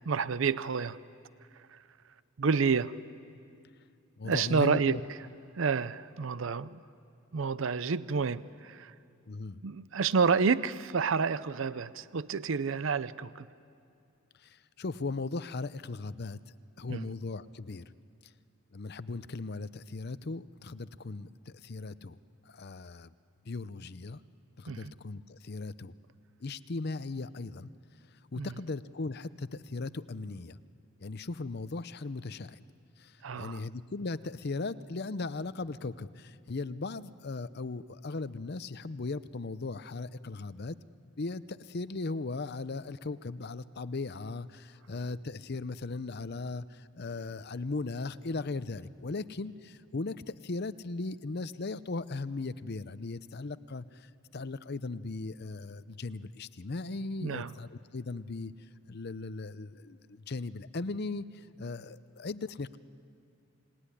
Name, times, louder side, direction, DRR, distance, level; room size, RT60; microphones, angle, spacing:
voice 1, 0.1-1.0 1.7-1.8 2.4-3.0 4.2-5.0 5.6-6.8 7.3-8.9 9.6-13.5 16.9-17.1 24.7-24.9 28.4-28.5 33.2-33.6 57.2-57.5, right 5 dB, 60° right, 0.5 m, -29 dB
voice 2, 4.2-5.0 9.3-9.6 14.4-16.4 16.8-17.8 18.7-22.2 22.5-23.1 23.5-24.2 24.6-25.9 26.4-27.7 28.3-30.6 31.0-32.6 33.0-40.8 41.2-54.1 54.3-58.5 58.9-61.2 61.6-62.8, left 3 dB, 50° left, 0.6 m, -38 dB
29.0 x 19.0 x 9.9 m
head